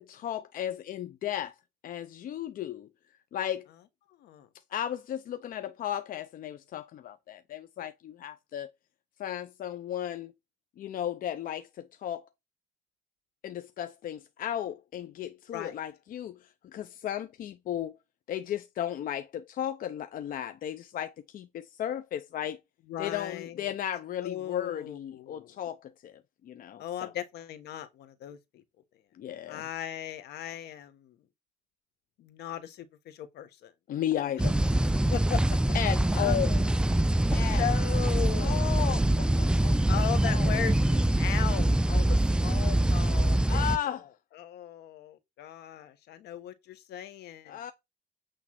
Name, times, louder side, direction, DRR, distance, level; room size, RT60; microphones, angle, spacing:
voice 1, 0.0-1.5 1.8-2.9 3.3-3.7 4.7-8.7 9.2-10.3 10.8-12.2 13.4-16.4 16.6-18.0 18.3-22.6 23.0-26.1 26.4-27.1 29.2-29.6 33.9-34.6 35.7-36.6 37.3-37.6 38.4-39.8 40.2-40.5 43.5-44.0 47.5-47.7, left 11 dB, 55° left, 0.7 m, -35 dB
voice 2, 4.1-4.5 15.5-15.8 22.9-23.7 24.2-25.6 26.8-28.6 29.5-31.2 32.2-33.7 35.1-35.4 36.1-36.4 37.6-38.7 39.9-47.6, left 11 dB, 75° left, 1.4 m, -38 dB
sound 1, 34.4-43.8, right 1 dB, 5° right, 0.3 m, -24 dB
9.0 x 3.4 x 5.9 m
cardioid pair, 110°, 17 cm